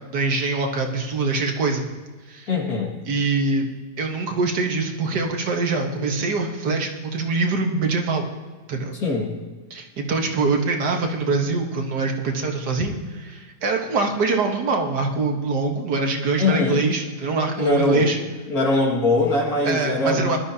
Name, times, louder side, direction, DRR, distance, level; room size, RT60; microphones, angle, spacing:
voice 1, 0.1-1.9 2.3-2.5 3.1-3.7 4.0-8.3 8.7-8.9 9.7-13.0 13.3-18.2 19.6-20.4, right 3 dB, 75° right, 2 dB, 1.9 m, -24 dB
voice 2, 2.5-3.0 9.0-9.3 16.4-16.8 17.6-18.1 18.5-20.4, left 3 dB, 60° left, -1 dB, 2.6 m, -22 dB
20.5 x 12.0 x 2.8 m, 1.4 s
omnidirectional pair, 1.8 m